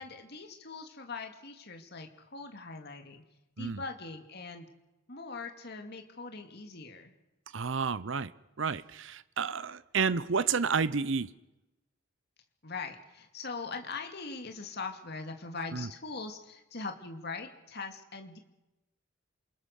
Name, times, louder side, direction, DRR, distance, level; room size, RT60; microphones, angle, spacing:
voice 1, 0.0-3.2 3.6-4.7 5.1-7.1 12.6-18.4, left 4 dB, 50° left, 4 dB, 2.2 m, -41 dB
voice 2, 7.5-8.3 8.6-11.3 15.7-15.9, right 5 dB, 65° right, 15 dB, 0.7 m, -30 dB
27.5 x 21.5 x 6.6 m, 0.99 s
head